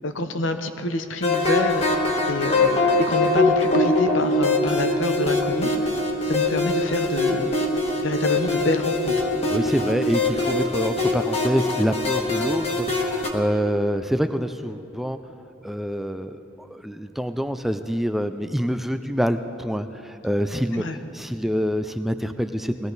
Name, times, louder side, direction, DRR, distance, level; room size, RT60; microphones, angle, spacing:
voice 1, 0.0-2.0 2.3-5.9 6.2-7.5 8.0-9.3 20.7-21.0, left 2 dB, 80° left, 8 dB, 0.9 m, -27 dB
sound 1, 1.2-13.3, left 2 dB, 30° left, 1.4 m, -23 dB
voice 2, 9.5-15.2 15.6-20.9 21.1-22.9, equal, ahead, 8 dB, 0.3 m, -26 dB
19.5 x 14.5 x 4.0 m, 2.7 s
head